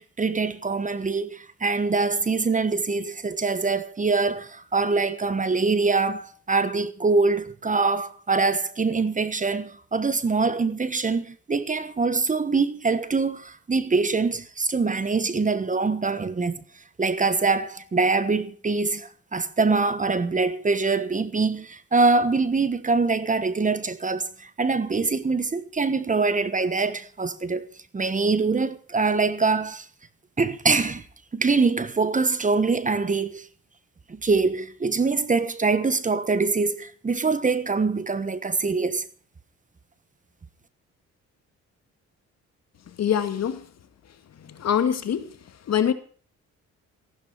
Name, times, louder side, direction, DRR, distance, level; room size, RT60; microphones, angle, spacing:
voice 1, 0.0-16.6 17.0-27.6 27.9-29.9 30.4-31.0 31.3-33.5 34.1-39.1, right 4 dB, 25° right, 1.2 m, -24 dB
voice 2, 43.0-43.6 44.5-45.3 45.7-45.9, left 8 dB, 60° left, 2.0 m, -24 dB
15.0 x 12.0 x 5.7 m
cardioid pair, 90°, 30 cm